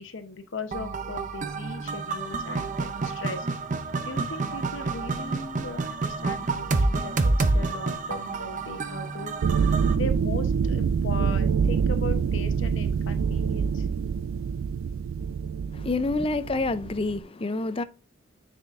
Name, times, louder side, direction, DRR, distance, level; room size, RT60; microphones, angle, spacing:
voice 1, 0.0-3.5 4.0-13.9, left 3 dB, 65° left, 0.9 m, -38 dB
sound 1, 0.7-9.9, right 3 dB, 40° right, 0.6 m, -28 dB
sound 2, 9.4-17.2, right 6 dB, 80° right, 0.4 m, -26 dB
voice 2, 15.8-17.8, left 3 dB, 30° left, 0.5 m, -27 dB
9.7 x 5.1 x 2.5 m
head